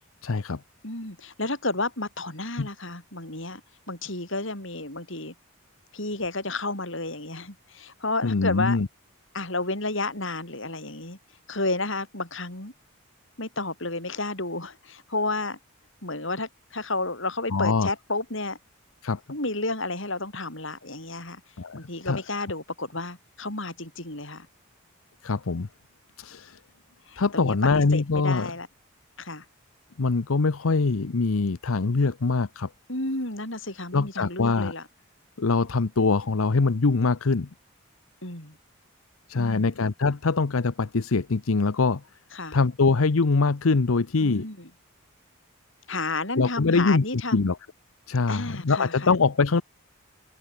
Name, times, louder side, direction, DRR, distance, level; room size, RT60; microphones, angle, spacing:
voice 1, 0.2-0.6 2.6-2.7 8.2-8.9 17.5-17.9 19.0-19.2 21.6-21.8 22.1-22.2 25.2-25.7 26.2-26.6 27.2-28.5 30.0-32.7 33.9-34.7 35.4-37.5 39.3-42.0 42.5-44.5 46.4-47.0 47.3-47.6 48.1-49.6, left 4 dB, 75° left, 0.7 m, -23 dB
voice 2, 0.8-3.6 3.9-5.3 5.9-8.8 9.3-11.2 11.5-12.7 13.4-15.6 16.0-18.6 19.3-21.4 21.7-24.5 27.1-28.7 29.2-29.5 32.9-34.9 38.2-38.6 39.3-39.7 42.3-42.6 44.2-44.7 45.9-47.5 48.3-49.1, left 2 dB, 60° left, 7.0 m, -31 dB
open air
head